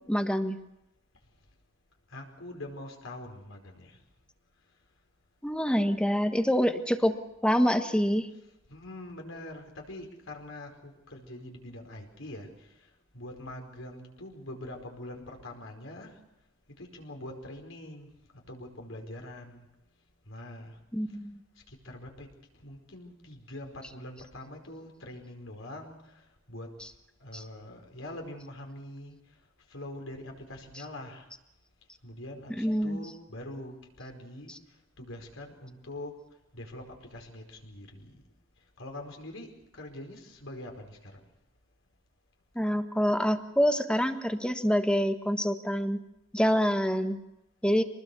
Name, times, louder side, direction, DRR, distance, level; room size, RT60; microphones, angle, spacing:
voice 1, 0.1-0.6 5.4-7.2 7.4-8.3 20.9-21.4 27.3-27.4 32.6-33.0 42.5-46.0 46.3-47.2 47.6-47.8, equal, 5° left, 7 dB, 1.4 m, -26 dB
voice 2, 2.1-4.0 8.7-12.7 13.1-16.2 16.8-18.1 18.5-19.7 20.3-20.7 21.7-22.3 22.6-26.2 26.5-26.7 27.2-29.2 29.7-31.3 32.0-34.6 35.0-36.1 36.5-38.2 38.8-41.2, left 1 dB, 75° left, 2 dB, 4.9 m, -44 dB
25.5 x 20.0 x 7.0 m, 0.89 s
head